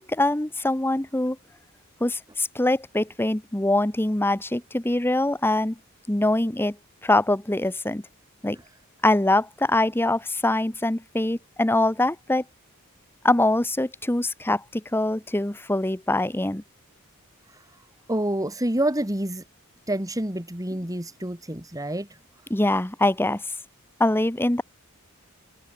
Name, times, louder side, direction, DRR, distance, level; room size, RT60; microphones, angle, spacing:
voice 1, 0.0-1.4 2.0-5.8 6.1-6.8 7.0-8.0 8.4-8.6 9.0-12.4 13.2-16.6 22.5-23.4 24.0-24.6, left 1 dB, 10° left, 0.9 m, -23 dB
voice 2, 18.1-19.4 19.9-22.1, right 1 dB, 15° right, 2.9 m, -27 dB
head